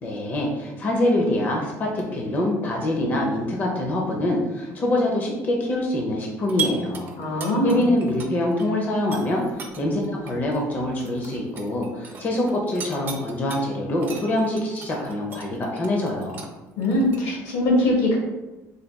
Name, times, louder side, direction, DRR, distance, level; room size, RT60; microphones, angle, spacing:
voice 1, 0.0-7.1 7.6-16.4, left 1 dB, 30° left, 0 dB, 0.5 m, -25 dB
sound 1, 6.4-8.6 9.0-13.6 14.0-17.2, right 6 dB, 35° right, 0.5 m, -36 dB
voice 2, 7.2-7.8 16.8-18.2, left 1 dB, 85° left, -2 dB, 1.4 m, -21 dB
4.0 x 2.2 x 3.4 m, 1.1 s
cardioid pair, 150°, 6 cm